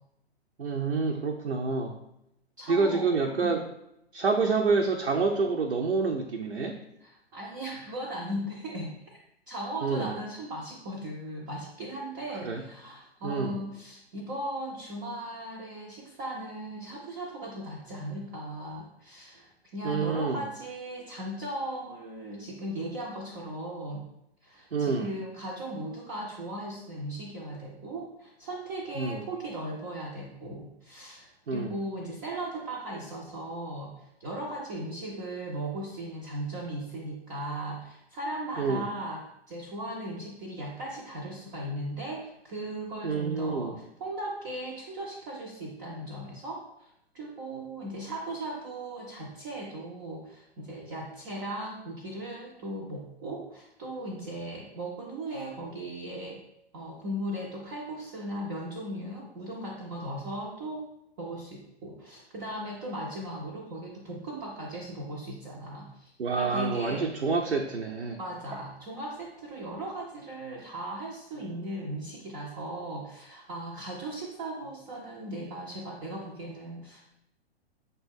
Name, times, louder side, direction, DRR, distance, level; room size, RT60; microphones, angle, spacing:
voice 1, 0.6-2.0 2.7-3.6 4.1-6.8 9.8-10.1 12.4-12.6 13.2-13.6 19.8-20.4 24.7-25.1 29.0-29.2 31.5-31.7 38.6-38.9 43.0-43.8 66.2-68.2, right 4 dB, 85° right, 2 dB, 0.5 m, -28 dB
voice 2, 2.6-3.7 7.0-9.2 9.5-24.0 24.4-56.4 56.7-60.9 61.2-67.2 68.2-77.0, right 1 dB, 20° right, -3 dB, 0.3 m, -37 dB
5.5 x 2.2 x 3.5 m, 0.82 s
figure-of-eight pair, 110°, 32 cm